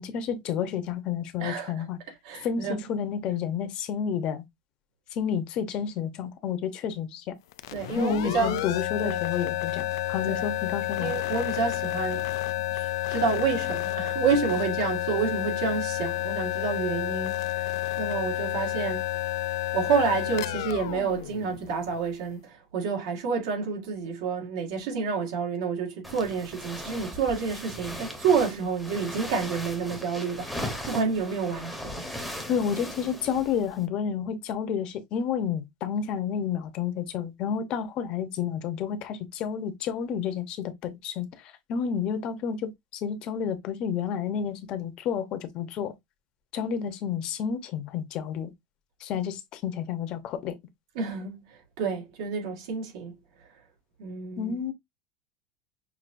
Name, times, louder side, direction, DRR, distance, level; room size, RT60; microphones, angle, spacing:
voice 1, 0.0-2.0 2.4-4.5 5.1-7.3 7.9-11.1 32.5-45.9 46.5-48.5 49.0-50.5 54.4-54.7, left 7 dB, 35° left, 0.8 m, -30 dB
voice 2, 1.4-1.7 2.2-2.8 7.7-8.6 9.0-9.2 10.3-10.5 11.0-12.2 12.7-19.1 19.7-32.1 50.9-51.4 51.8-53.1 54.0-54.5, right 5 dB, 75° right, 1.6 m, -29 dB
sound 1, 7.5-22.1, left 16 dB, 85° left, 0.3 m, -30 dB
sound 2, 26.0-33.8, left 1 dB, ahead, 0.8 m, -38 dB
6.0 x 2.6 x 2.5 m
supercardioid pair, 170°, 2 cm